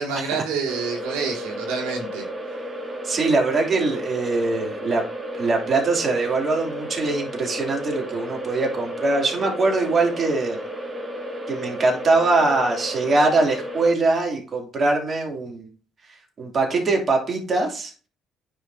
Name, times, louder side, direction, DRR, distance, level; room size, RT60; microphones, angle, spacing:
voice 1, 0.0-2.2, right 5 dB, 80° right, 0 dB, 2.2 m, -28 dB
sound 1, 0.7-13.9, right 1 dB, 25° right, 1.8 m, -33 dB
voice 2, 3.0-5.0 5.3-10.6 11.5-15.7 16.4-17.9, right 3 dB, 40° right, 0 dB, 2.8 m, -22 dB
10.5 x 4.9 x 2.8 m, 0.38 s
supercardioid pair, 65°, 0 cm